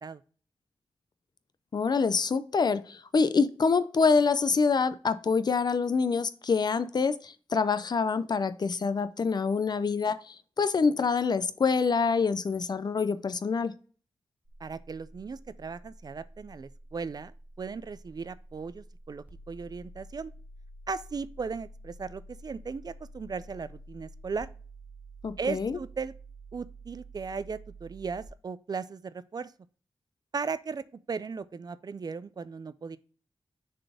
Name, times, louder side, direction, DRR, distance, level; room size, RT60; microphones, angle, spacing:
voice 1, 1.7-13.7 25.2-25.8, left 5 dB, 45° left, 0.5 m, -26 dB
sound 1, 14.4-28.3, right 1 dB, 15° right, 0.8 m, -49 dB
voice 2, 14.6-17.3 17.6-20.3 20.9-24.5 25.4-26.1 26.5-29.5 30.3-33.0, right 5 dB, 45° right, 0.4 m, -37 dB
6.6 x 4.1 x 3.5 m
wide cardioid pair, 150°, 10 cm